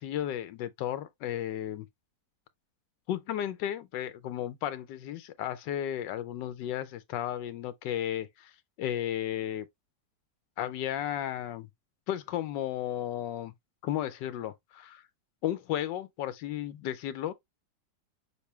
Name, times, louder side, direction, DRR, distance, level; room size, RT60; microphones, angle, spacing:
voice 1, 0.0-1.9 3.1-8.5 8.8-9.7 10.6-11.7 12.1-13.5 13.8-15.0 15.4-17.3, left 11 dB, 90° left, 1.3 m, -34 dB
6.6 x 2.6 x 3.1 m
omnidirectional pair, 1.9 m